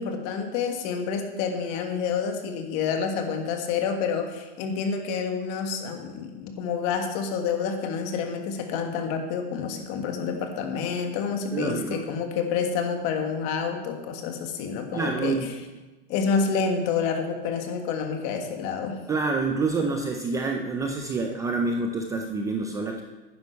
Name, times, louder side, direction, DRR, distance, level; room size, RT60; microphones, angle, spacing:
voice 1, 0.0-15.4 16.1-19.0, left 6 dB, 40° left, 4 dB, 1.6 m, -28 dB
voice 2, 11.5-12.0 14.9-15.5 19.1-23.0, right 3 dB, 10° right, 4 dB, 0.4 m, -27 dB
11.5 x 9.9 x 4.6 m, 1.2 s
supercardioid pair, 145°, 31 cm